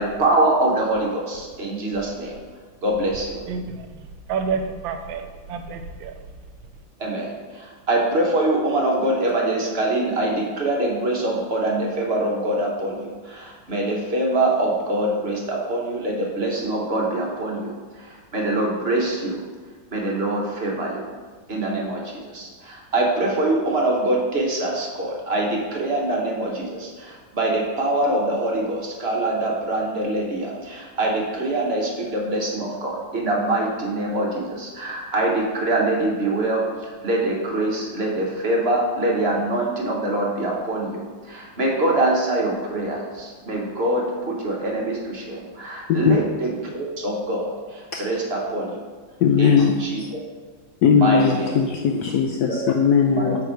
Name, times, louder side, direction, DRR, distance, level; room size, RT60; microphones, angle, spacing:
voice 1, 0.0-2.4 2.8-3.5 7.0-19.4 19.9-21.1 21.5-48.8 49.4-50.0 51.0-51.6 52.5-52.6 53.1-53.3, right 2 dB, 40° right, 1.1 m, -24 dB
voice 2, 3.5-3.9 4.3-6.1, right 5 dB, 85° right, 1.4 m, -29 dB
voice 3, 49.2-49.7 50.0-50.1 50.8-53.4, left 6 dB, 75° left, 0.9 m, -19 dB
8.7 x 3.6 x 4.5 m
omnidirectional pair, 2.1 m